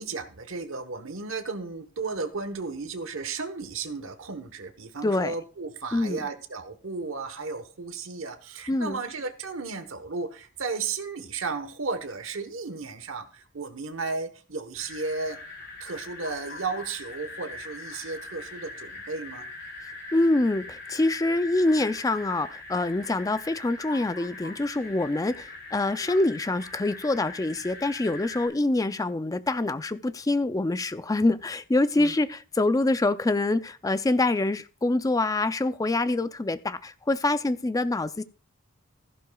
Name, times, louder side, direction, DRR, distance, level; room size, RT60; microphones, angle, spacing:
voice 1, 0.0-15.4 15.8-19.5 32.0-32.2, right 4 dB, 75° right, 1.2 m, -34 dB
voice 2, 5.0-5.3 5.9-6.2 8.7-9.0 20.1-38.2, left 2 dB, 15° left, 0.4 m, -25 dB
sound 1, 14.7-28.5, left 2 dB, 50° left, 5.1 m, -42 dB
14.5 x 11.5 x 2.3 m
head